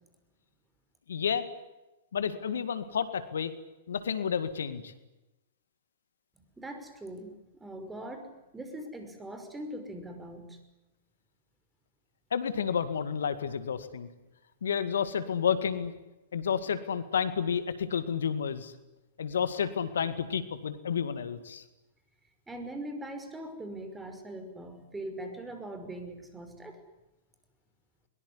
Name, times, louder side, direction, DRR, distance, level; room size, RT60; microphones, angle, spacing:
voice 1, 1.1-1.5 2.1-3.5 3.9-4.9 12.3-14.1 14.6-15.9 16.3-18.7 19.2-21.6, left 7 dB, 75° left, 12 dB, 2.1 m, -30 dB
voice 2, 6.6-7.3 7.6-10.6 22.5-26.8, right 1 dB, 10° right, 7 dB, 5.7 m, -41 dB
22.5 x 22.5 x 9.8 m, 1.0 s
hypercardioid pair, 105°, 0 cm